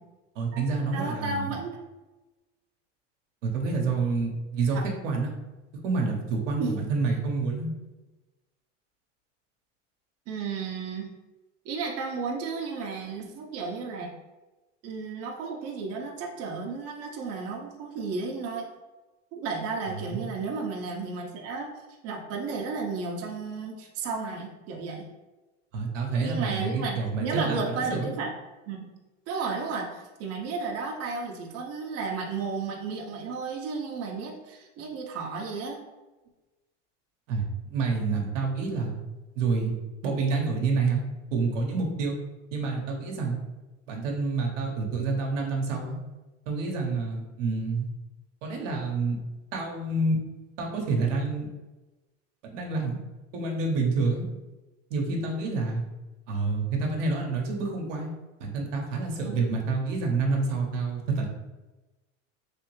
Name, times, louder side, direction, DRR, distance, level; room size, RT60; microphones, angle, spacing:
voice 1, 0.3-1.5 3.4-4.8 5.0-5.3 5.8-7.7 20.0-20.2 25.7-28.1 37.3-39.0 39.4-39.8 40.0-41.0 41.3-42.2 42.5-43.4 43.9-46.0 46.5-47.9 48.4-49.2 49.5-50.2 50.6-51.5 52.5-53.0 53.3-54.3 54.9-55.8 56.3-58.1 58.4-61.3, right 4 dB, 85° right, 1 dB, 0.9 m, -28 dB
voice 2, 0.9-1.8 6.6-6.7 10.3-11.1 11.6-14.1 14.8-18.7 19.3-21.7 22.0-25.1 26.2-28.3 28.7-28.9 29.3-35.8 59.2-59.5, right 4 dB, 40° right, 0 dB, 0.7 m, -33 dB
3.3 x 2.8 x 3.1 m, 1.1 s
supercardioid pair, 115°, 36 cm